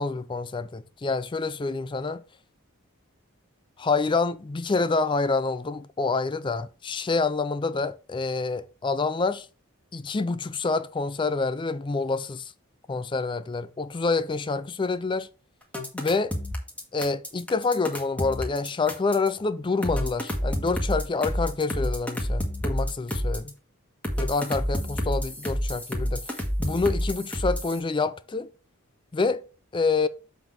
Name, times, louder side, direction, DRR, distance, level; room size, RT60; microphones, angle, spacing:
voice 1, 0.0-2.2 3.8-9.5 9.9-12.5 12.9-15.3 15.9-16.3 16.9-23.5 24.2-28.5 29.1-29.4 29.7-30.1, left 4 dB, 20° left, 0.4 m, -27 dB
sound 1, 15.7-19.3 19.8-23.5 24.0-27.8, equal, 5° left, 1.4 m, -29 dB
7.0 x 3.9 x 6.0 m
head